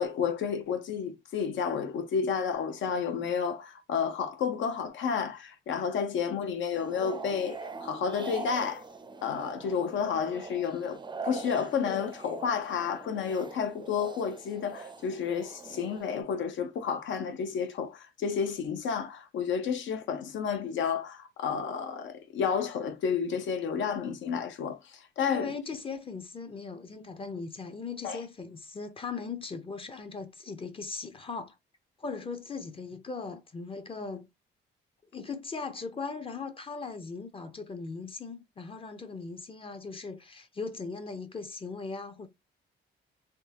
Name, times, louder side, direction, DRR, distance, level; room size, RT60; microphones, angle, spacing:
voice 1, 0.0-8.8 9.2-25.5 28.0-28.2, left 6 dB, 75° left, 0.8 m, -31 dB
sound 1, 6.7-16.2, right 4 dB, 25° right, 0.5 m, -42 dB
voice 2, 25.3-31.5 32.0-34.3 35.1-42.3, left 4 dB, 25° left, 0.6 m, -39 dB
3.6 x 2.3 x 2.8 m
cardioid pair, 90°, 20 cm